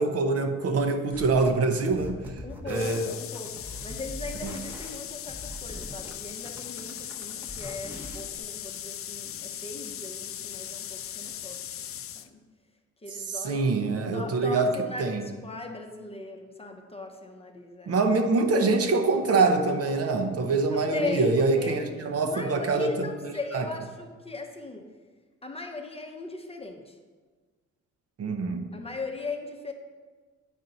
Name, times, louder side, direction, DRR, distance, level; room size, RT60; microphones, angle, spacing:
voice 1, 0.0-2.2 2.7-3.1 4.4-4.5 13.4-14.7 15.0-15.2 17.9-23.6 28.2-28.7, right 3 dB, 50° right, 5 dB, 0.8 m, -25 dB
sound 1, 1.1-1.5 1.8-6.1 6.4-8.4, equal, 5° right, 1.0 m, -42 dB
voice 2, 2.4-11.7 12.1-12.4 13.0-13.7 14.1-18.0 18.6-18.7 20.7-24.9 25.4-27.0 28.7-29.7, left 3 dB, 20° left, 3 dB, 0.8 m, -38 dB
sound 2, 2.7-12.3, left 10 dB, 50° left, 0.4 m, -39 dB
9.2 x 4.5 x 4.0 m, 1.4 s
cardioid pair, 90°, 30 cm